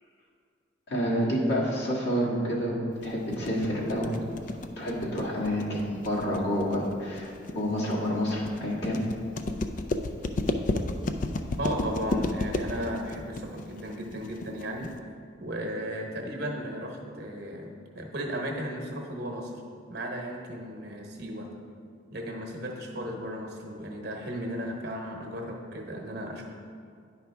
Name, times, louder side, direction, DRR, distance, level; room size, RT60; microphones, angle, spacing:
voice 1, 0.9-4.2 4.8-9.0, equal, 55° left, -5 dB, 1.6 m, -28 dB
sound 1, 3.0-15.0, left 2 dB, 40° left, 0.3 m, -32 dB
voice 2, 11.6-14.9 15.4-17.7 17.9-19.5 19.9-21.5 22.1-26.5, equal, 55° right, 1 dB, 1.0 m, -35 dB
10.5 x 4.9 x 3.4 m, 2.3 s
head